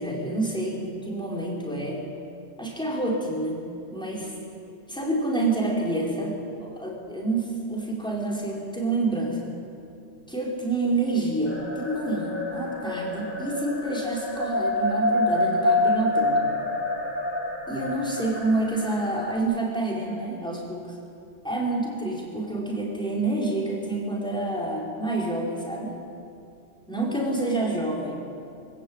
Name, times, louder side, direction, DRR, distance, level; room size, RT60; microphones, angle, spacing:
voice 1, 0.0-2.0 2.6-3.6 3.9-4.3 4.7-6.3 6.6-9.4 10.3-16.4 17.7-20.9 21.4-25.9 26.9-28.2, right 2 dB, 5° left, -4 dB, 4.8 m, -28 dB
sound 1, 11.4-19.4, left 2 dB, 10° right, 2.7 m, -27 dB
24.5 x 15.0 x 9.0 m, 2.5 s
omnidirectional pair, 1.1 m